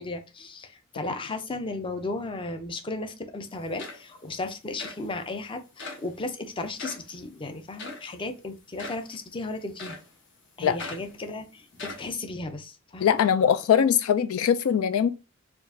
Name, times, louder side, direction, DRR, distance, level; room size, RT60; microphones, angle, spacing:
voice 1, 0.0-10.0 10.6-13.2, left 2 dB, 25° left, 0.5 m, -35 dB
sound 1, 3.4-3.5 3.8-4.3 4.8-5.0 5.8-6.1 6.8-7.1 7.8-8.1 8.8-9.1 9.8-10.1 10.8-11.1 11.7-12.1, left 3 dB, 60° left, 1.0 m, -40 dB
voice 2, 13.0-15.1, left 8 dB, 80° left, 0.3 m, -21 dB
4.5 x 2.4 x 2.6 m
head